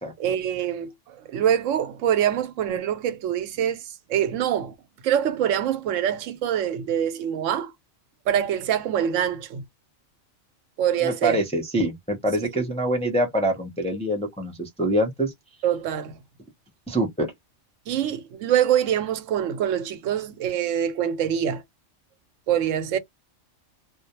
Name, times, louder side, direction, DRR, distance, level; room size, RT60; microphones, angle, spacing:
voice 1, 0.2-4.7 5.0-7.7 8.3-9.6 10.8-11.4 12.4-12.6 15.6-16.2 17.9-21.6 22.5-23.0, right 10 dB, 80° right, 0.9 m, -25 dB
voice 2, 11.0-15.3 16.9-17.3, right 1 dB, 10° left, 0.4 m, -25 dB
2.2 x 2.0 x 2.8 m
omnidirectional pair, 1.3 m